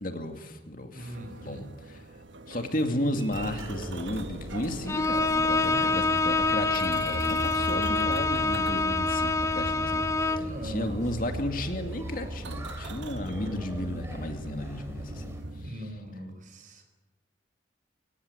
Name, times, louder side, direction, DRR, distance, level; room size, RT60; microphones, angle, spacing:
voice 1, 0.0-1.2 1.4-2.0 2.5-10.1 10.4-15.7, left 1 dB, 45° left, 5 dB, 2.4 m, -33 dB
voice 2, 0.9-1.7 5.6-6.0 10.4-11.4 15.5-16.8, right 1 dB, 45° right, 7 dB, 4.7 m, -40 dB
sound 1, 1.0-15.7, right 1 dB, 75° right, 1.4 m, -40 dB
sound 2, 3.3-15.4, equal, 15° right, 3.7 m, -42 dB
Bowed string instrument, 4.9-10.6, left 3 dB, 15° left, 0.8 m, -26 dB
25.0 x 17.5 x 9.6 m, 1.1 s
head